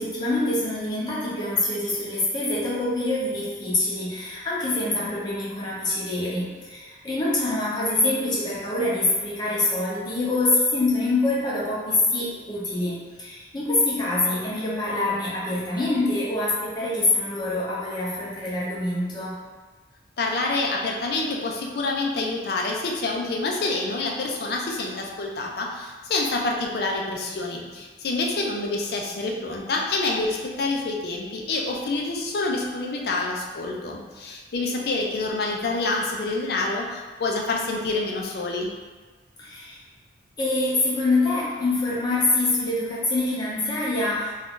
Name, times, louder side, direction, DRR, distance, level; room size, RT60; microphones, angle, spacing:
voice 1, 0.0-19.3 39.4-39.8 40.4-44.3, left 2 dB, 25° left, -7 dB, 0.7 m, -25 dB
voice 2, 20.2-38.7, left 3 dB, 55° left, 0 dB, 0.4 m, -27 dB
2.6 x 2.3 x 3.6 m, 1.4 s
head